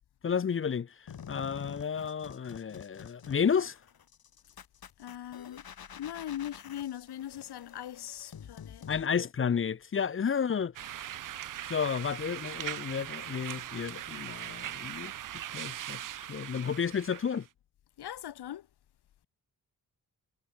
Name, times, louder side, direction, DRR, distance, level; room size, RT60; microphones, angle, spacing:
voice 1, 0.2-0.9 1.3-3.8 8.9-10.7 11.7-15.1 15.5-16.0 16.3-17.4, left 7 dB, 35° left, 0.5 m, -31 dB
sound 1, 1.1-9.1, left 8 dB, 65° left, 1.9 m, -49 dB
voice 2, 5.0-5.6 6.0-9.0 18.0-18.7, left 11 dB, 85° left, 1.0 m, -40 dB
sound 2, 10.8-17.4, right 11 dB, 55° right, 0.5 m, -40 dB
cardioid pair, 70°, 39 cm